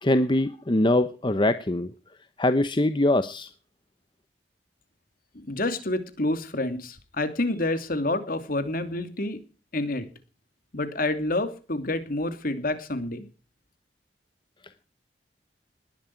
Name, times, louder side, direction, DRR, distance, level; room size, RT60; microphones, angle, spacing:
voice 1, 0.0-1.9 2.4-3.5, left 1 dB, 25° left, 11 dB, 0.9 m, -23 dB
voice 2, 5.3-9.4 9.7-10.1 10.7-13.3, left 2 dB, 55° left, 9 dB, 2.7 m, -28 dB
20.0 x 11.5 x 4.7 m, 0.38 s
head